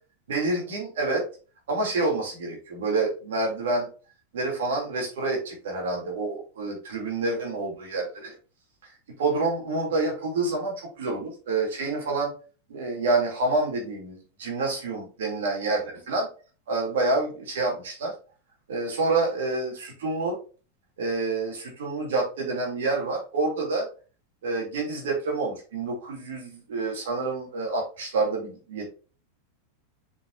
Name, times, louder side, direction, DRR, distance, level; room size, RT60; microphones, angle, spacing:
voice 1, 0.3-1.2 1.7-3.9 4.3-8.3 9.2-12.3 12.7-16.3 16.7-18.1 18.7-20.4 21.0-23.9 24.4-28.9, right 3 dB, 60° right, -1 dB, 3.3 m, -28 dB
7.3 x 5.6 x 2.8 m, 0.36 s
figure-of-eight pair, 90°, 0 cm